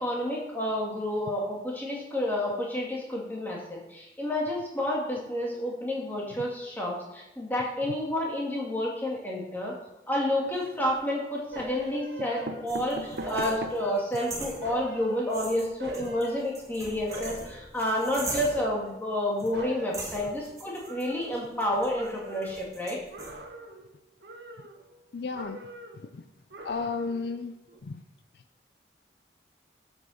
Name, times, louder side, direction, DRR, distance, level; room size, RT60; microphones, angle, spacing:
voice 1, 0.0-9.7 10.1-23.0, left 1 dB, 10° left, -3 dB, 1.9 m, -30 dB
sound 1, 10.4-11.1 11.8-11.9 12.2-14.0 14.5-14.6 14.8-14.9 15.2-15.3, right 1 dB, 60° right, 0.8 m, -39 dB
sound 2, 11.5-12.8 13.2-14.2 14.6-16.7 17.1-17.7 18.1-19.3 19.5-21.7 21.9-22.6 23.1-23.9 24.2-25.1 25.3-26.1 26.5-27.3 27.7-27.8, right 3 dB, 90° right, 1.3 m, -43 dB
sound 3, 12.7-15.0 15.3-18.8 19.4-19.5 19.9-23.3, right 2 dB, 20° right, 1.3 m, -41 dB
voice 2, 25.1-25.7 26.1-26.2 26.6-27.5 27.8-28.0, left 4 dB, 70° left, 11 dB, 0.4 m, -33 dB
7.7 x 5.9 x 6.3 m, 0.92 s
head